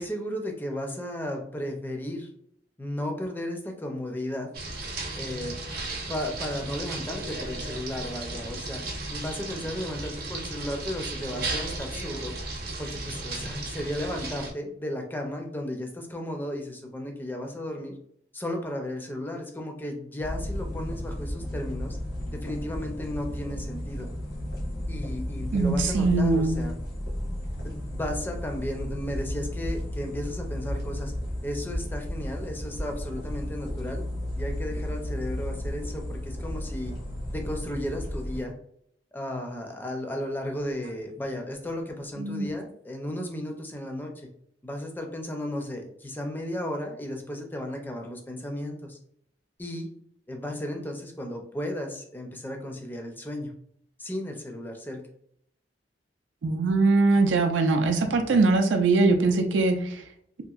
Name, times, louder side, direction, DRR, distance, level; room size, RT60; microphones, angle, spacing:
voice 1, 0.0-2.3 2.8-4.5 5.1-5.6 6.1-8.8 9.1-12.3 12.8-17.9 18.3-22.0 22.3-24.1 24.9-26.7 27.6-31.1 31.4-34.0 34.4-36.9 37.3-38.5 39.1-44.3 44.6-49.0 49.6-49.9 50.3-53.5 54.0-55.0, left 1 dB, 10° left, 2 dB, 0.4 m, -34 dB
sound 1, 4.5-14.5, right 2 dB, 55° right, 0.7 m, -35 dB
sound 2, 20.2-38.4, left 1 dB, 65° left, 1.0 m, -33 dB
voice 2, 25.5-26.6 42.2-42.5 56.4-60.0, right 3 dB, 90° right, 5 dB, 0.4 m, -22 dB
2.8 x 2.6 x 2.3 m, 0.68 s
head